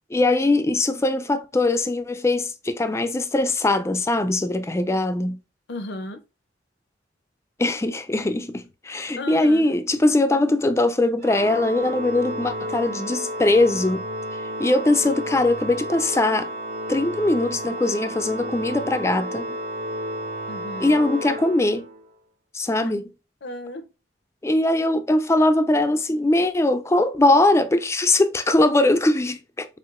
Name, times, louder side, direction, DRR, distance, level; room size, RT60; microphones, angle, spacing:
voice 1, 0.1-5.4 7.6-14.1 14.3-16.5 16.9-19.6 20.8-21.9 22.5-23.1 24.4-29.7, left 2 dB, 15° left, 0.3 m, -21 dB
voice 2, 5.7-6.2 9.2-9.7 20.5-21.0 22.8-22.9 23.4-23.9, left 1 dB, 60° left, 0.6 m, -34 dB
Organ, 11.2-22.1, equal, 40° right, 0.8 m, -32 dB
4.6 x 3.6 x 2.4 m
head